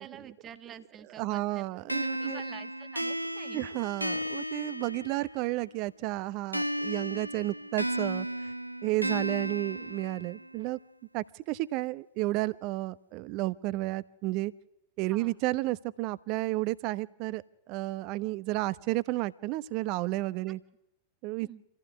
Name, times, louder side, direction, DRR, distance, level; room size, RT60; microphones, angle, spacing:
voice 1, 0.0-1.7 2.0-3.7 15.1-15.4 21.4-21.6, right 9 dB, 25° right, 9 dB, 1.7 m, -48 dB
voice 2, 1.2-2.4 3.5-8.3 8.8-10.8 11.1-14.5 15.0-20.6 21.2-21.5, right 19 dB, 45° right, 18 dB, 0.8 m, -32 dB
sound 1, 1.9-5.5 6.5-10.5, equal, 90° right, 0.9 m, -34 dB
26.5 x 15.5 x 9.9 m, 0.88 s
figure-of-eight pair, 90°, 0 cm